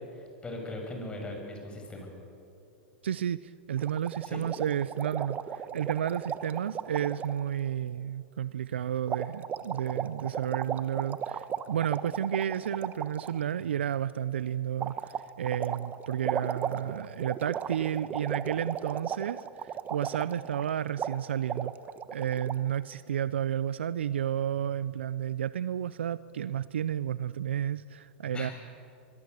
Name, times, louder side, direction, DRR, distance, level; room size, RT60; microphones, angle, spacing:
voice 1, 0.1-2.1 4.2-4.4 28.3-28.5, left 1 dB, 15° left, 2 dB, 7.2 m, -39 dB
voice 2, 3.0-21.7 22.1-28.5, right 10 dB, 85° right, 17 dB, 0.5 m, -32 dB
sound 1, 3.8-7.4 9.1-13.4 14.8-20.7 21.0-21.2 21.5-22.5, right 8 dB, 25° right, 1.1 m, -35 dB
25.0 x 22.0 x 8.3 m, 2.7 s
hypercardioid pair, 115°, 6 cm